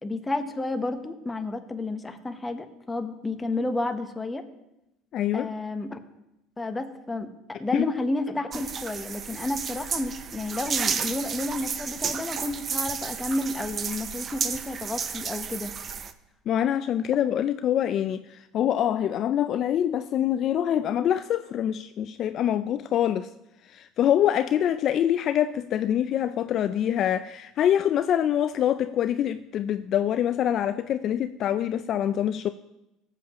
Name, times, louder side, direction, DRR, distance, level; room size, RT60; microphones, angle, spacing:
voice 1, 0.0-4.4 5.3-6.0 6.6-15.7, left 2 dB, 15° left, 1.0 m, -31 dB
voice 2, 5.1-5.5 7.7-7.8 16.5-23.3 23.6-32.5, left 10 dB, 50° left, 0.3 m, -25 dB
sound 1, 8.5-16.1, right 6 dB, 35° right, 0.6 m, -32 dB
17.0 x 7.4 x 3.0 m
supercardioid pair, 105°, 0 cm